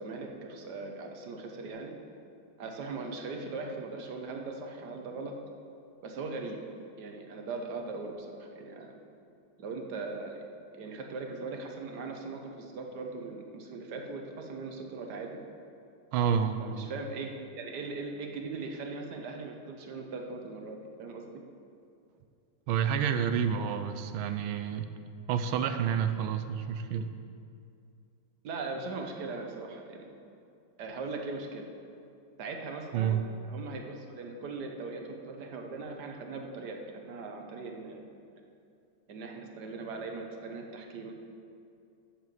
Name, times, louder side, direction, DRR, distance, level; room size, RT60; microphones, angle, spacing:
voice 1, 0.0-1.9 2.6-5.3 6.0-6.6 7.0-8.9 9.6-10.4 10.7-15.4 16.6-17.3 17.5-21.2 28.4-30.1 30.8-31.6 32.4-33.2 33.5-38.0 39.1-41.1, right 3 dB, 60° right, 3 dB, 1.4 m, -39 dB
voice 2, 16.1-16.9 22.7-24.9 25.3-27.1 32.9-33.2, right 8 dB, 85° right, 9 dB, 1.5 m, -29 dB
7.9 x 6.9 x 7.5 m, 2.5 s
omnidirectional pair, 2.2 m